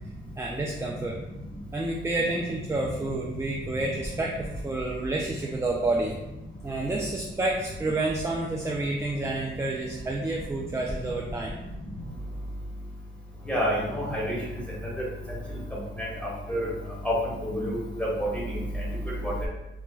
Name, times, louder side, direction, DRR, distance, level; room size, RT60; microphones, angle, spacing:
voice 1, 0.4-1.2 1.7-6.2 6.6-11.6, right 2 dB, 15° right, -1 dB, 0.3 m, -29 dB
voice 2, 13.5-14.4 15.0-15.1 16.0-16.1 16.5-16.7 17.0-17.1 17.4-18.8 19.2-19.5, equal, 5° left, -6 dB, 1.3 m, -28 dB
4.0 x 2.3 x 2.3 m, 0.96 s
cardioid pair, 105°, 21 cm